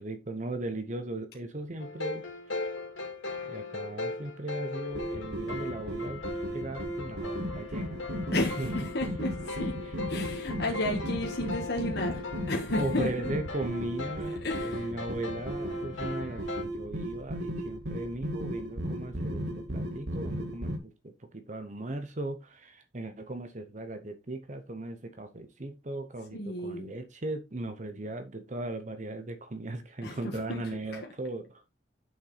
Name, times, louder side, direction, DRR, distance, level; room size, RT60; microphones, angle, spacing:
voice 1, 0.0-2.7 3.4-6.2 6.5-8.0 8.6-8.7 9.5-9.6 9.8-10.0 10.3-10.4 10.7-10.8 12.8-31.6, right 2 dB, 40° right, 0.9 m, -38 dB
sound 1, 1.8-16.6, left 3 dB, 80° left, 2.3 m, -39 dB
sound 2, 4.9-20.8, equal, 60° right, 1.5 m, -36 dB
voice 2, 8.3-9.7 10.1-13.1 14.4-14.9 26.3-26.9 30.0-30.6, left 1 dB, 55° left, 1.4 m, -33 dB
7.3 x 6.0 x 4.0 m
head